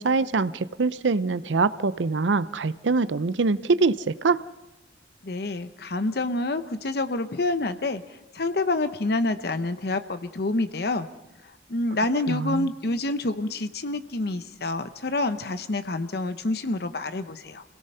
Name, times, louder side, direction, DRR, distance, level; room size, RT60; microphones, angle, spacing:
voice 1, 0.0-4.4 12.3-12.7, right 4 dB, 85° right, 16 dB, 0.6 m, -24 dB
voice 2, 5.2-11.1 11.4-17.6, left 2 dB, 60° left, 10 dB, 0.8 m, -28 dB
27.0 x 17.5 x 5.6 m, 0.97 s
head